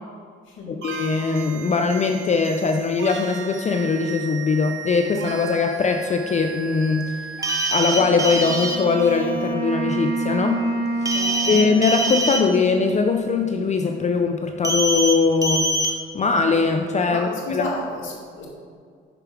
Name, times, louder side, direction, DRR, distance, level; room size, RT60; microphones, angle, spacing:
voice 1, 0.7-7.2 7.7-10.6 11.0-15.7 16.1-17.7, left 4 dB, 35° left, 5 dB, 0.5 m, -21 dB
sound 1, 0.8-9.5, right 6 dB, 70° right, 0.7 m, -36 dB
sound 2, 7.4-8.8 11.0-12.4 14.6-15.1 15.4-15.9, right 1 dB, 15° right, 0.9 m, -23 dB
Wind instrument woodwind instrument, 7.9-13.4, right 2 dB, 15° left, 1.8 m, -29 dB
voice 2, 11.1-11.6 17.1-18.5, left 2 dB, 75° left, -2 dB, 1.7 m, -32 dB
6.8 x 6.0 x 3.6 m, 2.1 s
cardioid pair, 90°, 20 cm